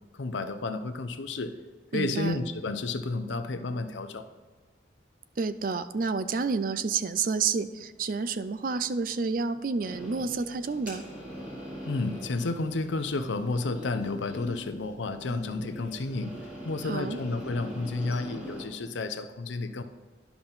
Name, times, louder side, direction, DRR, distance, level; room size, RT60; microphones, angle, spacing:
voice 1, 0.1-1.5 1.9-4.3 11.8-16.4 16.6-19.8, left 3 dB, 80° left, 9 dB, 0.6 m, -31 dB
voice 2, 1.9-2.4 5.4-11.0 16.8-17.2, right 5 dB, 45° right, 12 dB, 0.4 m, -29 dB
sound 1, 9.8-18.7, equal, 10° right, 2.1 m, -42 dB
10.5 x 5.8 x 4.0 m, 1.4 s
head